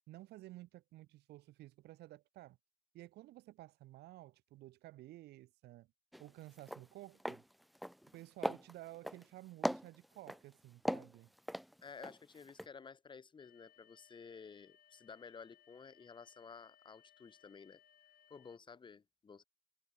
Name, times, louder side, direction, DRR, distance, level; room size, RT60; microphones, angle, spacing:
voice 1, 0.1-2.6 2.9-5.9 6.2-7.4 8.1-11.3, right 17 dB, 80° right, 1.9 m, -54 dB
sound 1, 6.1-6.3 6.6-6.8 7.2-7.4 7.7-8.2 8.4-9.2 9.6-10.4 10.8-12.2 12.5-12.7, equal, ahead, 0.4 m, -38 dB
voice 2, 11.8-17.8 18.3-19.4, left 5 dB, 30° left, 1.9 m, -53 dB
sound 2, 13.4-18.6, left 11 dB, 60° left, 6.0 m, -67 dB
cardioid pair, 110°, 17 cm